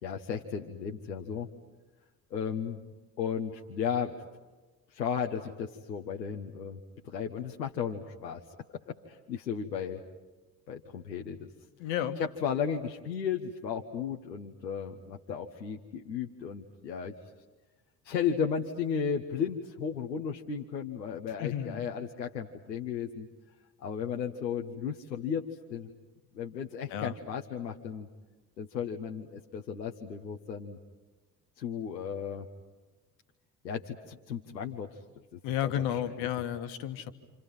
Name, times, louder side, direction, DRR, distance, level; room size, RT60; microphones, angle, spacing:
voice 1, 0.0-1.5 2.3-2.8 3.2-4.1 4.9-6.8 7.0-8.4 8.9-10.0 10.7-11.5 12.2-17.1 18.0-23.3 23.8-25.9 26.3-28.1 28.6-30.8 31.6-32.5 33.6-35.0 35.3-36.1, left 7 dB, 85° left, 2 dB, 1.2 m, -34 dB
voice 2, 11.8-12.2 21.4-21.9 26.9-27.1 35.4-37.1, left 10 dB, 65° left, 9 dB, 1.9 m, -32 dB
29.0 x 28.0 x 5.7 m, 1.2 s
figure-of-eight pair, 45°, 50 cm